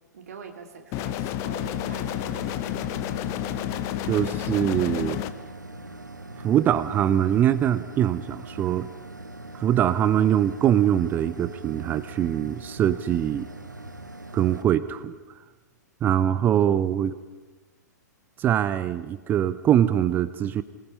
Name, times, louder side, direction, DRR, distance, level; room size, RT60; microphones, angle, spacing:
voice 1, 0.1-3.1, right 5 dB, 55° right, 4 dB, 2.5 m, -46 dB
sound 1, 0.9-5.3, left 12 dB, 30° left, 0.9 m, -30 dB
sound 2, 1.6-14.6, right 2 dB, 80° right, 1.4 m, -42 dB
voice 2, 4.0-5.2 6.4-8.9 9.5-13.5 14.3-15.2 16.0-17.2 18.4-20.6, right 10 dB, 20° right, 14 dB, 0.6 m, -23 dB
24.5 x 20.0 x 5.5 m, 1.2 s
figure-of-eight pair, 110°, 10 cm